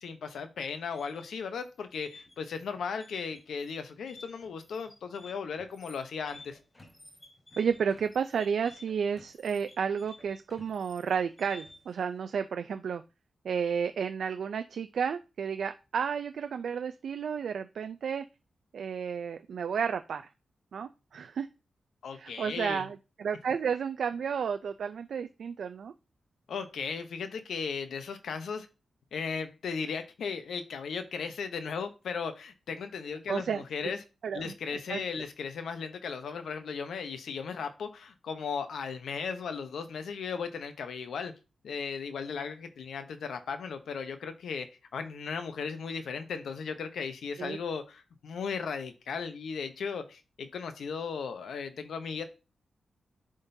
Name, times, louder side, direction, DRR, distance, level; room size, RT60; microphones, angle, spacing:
voice 1, 0.0-6.6 22.0-22.8 26.5-28.7 29.1-34.0 34.3-41.3 41.6-52.2, left 5 dB, 85° left, 8 dB, 0.8 m, -36 dB
sound 1, 0.8-12.0, left 2 dB, 20° left, 3.8 m, -53 dB
voice 2, 7.6-13.0 13.4-18.2 18.7-20.3 20.7-21.5 22.1-25.9 33.3-33.6 34.2-34.5 34.9-35.0 47.4-47.6, right 7 dB, 65° right, 9 dB, 0.3 m, -32 dB
10.5 x 3.7 x 2.7 m, 0.30 s
wide cardioid pair, 175°, 0 cm